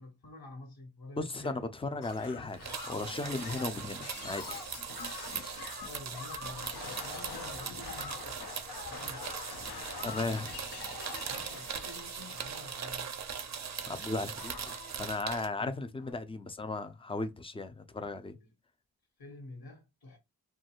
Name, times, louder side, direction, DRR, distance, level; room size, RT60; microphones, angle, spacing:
voice 1, 0.0-1.7 5.8-8.5 8.9-9.4 11.2-13.2 15.6-15.8 19.2-20.2, left 2 dB, 70° left, 1.2 m, -49 dB
voice 2, 1.2-4.6 10.0-10.5 13.9-14.6 15.0-18.4, left 3 dB, 15° left, 0.4 m, -36 dB
Shatter, 2.0-14.1 14.3-14.9 16.0-16.1, left 5 dB, 90° left, 0.7 m, -45 dB
sound 1, 2.5-15.5, right 7 dB, 50° right, 0.4 m, -40 dB
2.6 x 2.3 x 2.9 m
wide cardioid pair, 90°, 37 cm